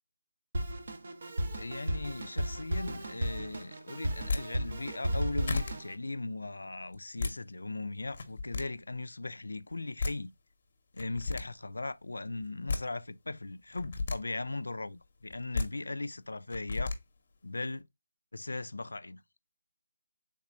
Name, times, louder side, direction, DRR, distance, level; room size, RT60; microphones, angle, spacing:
Drum kit, 0.5-5.9, right 1 dB, 55° right, 0.7 m, -35 dB
voice 1, 1.6-10.3 10.9-17.0 17.4-17.9 18.3-19.2, left 2 dB, 90° left, 0.3 m, -38 dB
sound 1, 4.1-4.4 5.1-5.2 5.5-5.7 6.9-7.3 8.1-8.6 9.7-9.8 10.0-10.1 11.0-11.4 12.4-12.8 13.7-14.2 15.3-15.7 16.5-17.0, left 3 dB, 45° left, 0.7 m, -32 dB
3.5 x 3.1 x 2.5 m
figure-of-eight pair, 165°, 0 cm